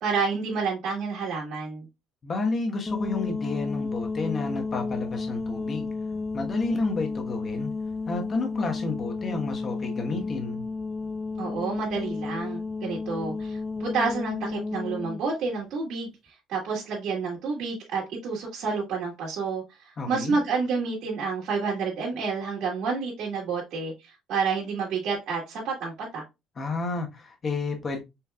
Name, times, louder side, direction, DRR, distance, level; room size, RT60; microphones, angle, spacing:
voice 1, 0.0-1.8 11.4-16.1 16.5-26.2, right 4 dB, 65° right, 1.8 m, -29 dB
voice 2, 2.2-5.9 6.3-7.7 8.1-10.6 20.0-20.4 26.6-28.0, left 3 dB, 35° left, 1.2 m, -31 dB
sound 1, 2.9-15.2, left 3 dB, 15° left, 0.4 m, -32 dB
5.6 x 3.4 x 2.3 m
cardioid pair, 130°, 0 cm